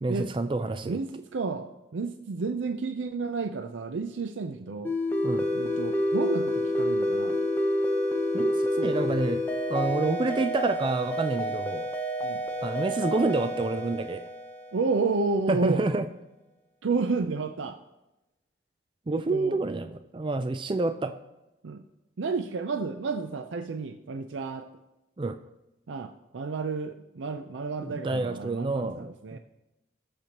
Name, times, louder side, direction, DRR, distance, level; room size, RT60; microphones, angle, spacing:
voice 1, 0.0-1.0 5.2-5.5 8.3-9.4 9.7-11.9 12.6-14.2 15.5-16.1 19.1-21.1 25.2-25.4 27.8-29.4, right 2 dB, 25° right, 9 dB, 0.3 m, -28 dB
voice 2, 0.8-5.0 5.5-7.4 12.2-12.4 14.7-15.8 16.8-17.8 19.1-19.6 21.6-21.8 22.2-24.7 25.9-29.4, right 4 dB, 90° right, 7 dB, 0.5 m, -31 dB
sound 1, 4.8-15.2, left 1 dB, 10° left, 0.8 m, -29 dB
20.0 x 6.7 x 3.0 m, 0.97 s
head